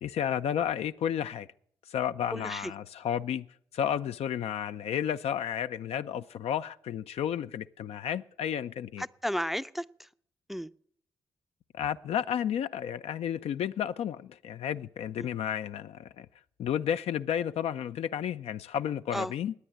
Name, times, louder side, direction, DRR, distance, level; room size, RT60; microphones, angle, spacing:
voice 1, 0.0-1.5 1.9-3.5 3.7-9.0 11.7-16.3 16.6-19.5, left 9 dB, 70° left, 0.4 m, -32 dB
voice 2, 2.3-2.7 9.0-10.1 10.5-10.7 15.2-15.3 19.1-19.3, equal, ahead, 0.5 m, -33 dB
9.9 x 9.3 x 9.8 m
supercardioid pair, 45°, 11 cm